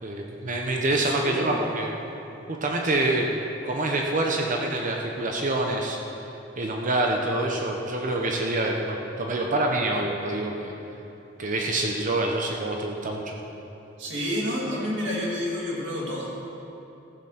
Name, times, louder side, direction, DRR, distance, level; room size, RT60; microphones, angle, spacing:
voice 1, 0.0-1.9 2.5-3.3 3.6-6.0 6.6-10.7 11.4-13.4, right 2 dB, 45° right, 1 dB, 0.9 m, -26 dB
voice 2, 0.9-1.6 14.0-16.4, equal, 70° right, -4 dB, 2.8 m, -29 dB
14.5 x 8.1 x 5.9 m, 2.9 s
head